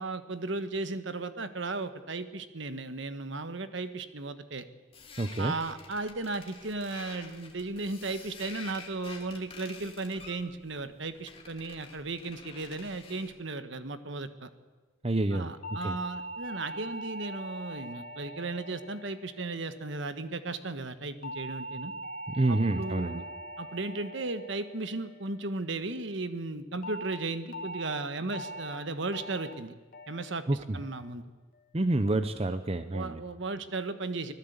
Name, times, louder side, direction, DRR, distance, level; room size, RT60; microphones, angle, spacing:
voice 1, 0.0-4.6 5.4-14.5 15.3-21.9 22.5-23.2 23.6-29.7 30.1-30.4 30.7-31.2 32.9-34.3, right 3 dB, 60° right, 10 dB, 1.3 m, -35 dB
sound 1, 4.9-13.4, left 4 dB, 25° left, 2.7 m, -49 dB
voice 2, 5.2-5.6 15.0-15.9 22.3-23.2 30.5-30.8 31.7-33.2, right 2 dB, 30° right, 10 dB, 0.7 m, -28 dB
sound 2, 15.6-20.1 21.2-25.7 26.8-27.1 27.5-27.9 28.3-28.7 29.1-29.5 29.9-30.3 30.7-31.1, right 1 dB, 45° left, 1.9 m, -42 dB
24.5 x 16.5 x 8.2 m, 1.3 s
head